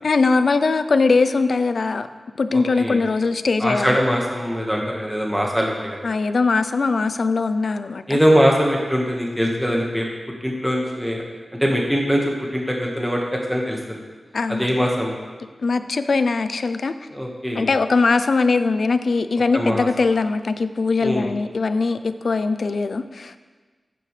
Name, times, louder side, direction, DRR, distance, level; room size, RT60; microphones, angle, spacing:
voice 1, 0.0-2.1 2.4-4.0 6.0-8.2 14.3-14.8 15.6-16.9 17.5-23.4, left 4 dB, 70° left, 11 dB, 0.5 m, -21 dB
voice 2, 2.5-3.0 3.6-6.0 8.1-10.1 10.4-11.2 11.6-12.2 12.5-14.0 14.5-15.1 17.1-17.7 19.5-19.9 21.0-21.3, equal, 5° right, -1 dB, 1.5 m, -22 dB
14.0 x 8.6 x 3.3 m, 1.3 s
wide cardioid pair, 85°, 0 cm